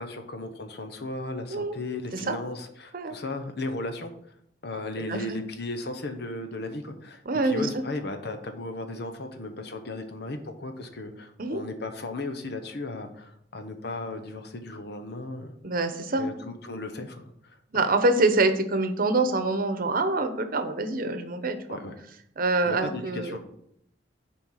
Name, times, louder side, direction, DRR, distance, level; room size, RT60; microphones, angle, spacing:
voice 1, 0.0-4.1 4.6-15.6 16.2-17.8 21.7-21.9 22.6-23.4, left 2 dB, 65° left, 6 dB, 1.1 m, -36 dB
voice 2, 5.1-5.4 7.3-7.8 11.4-11.6 15.6-16.3 17.7-21.8 22.4-23.4, right 2 dB, 55° right, 8 dB, 0.9 m, -25 dB
7.1 x 4.5 x 6.5 m, 0.72 s
head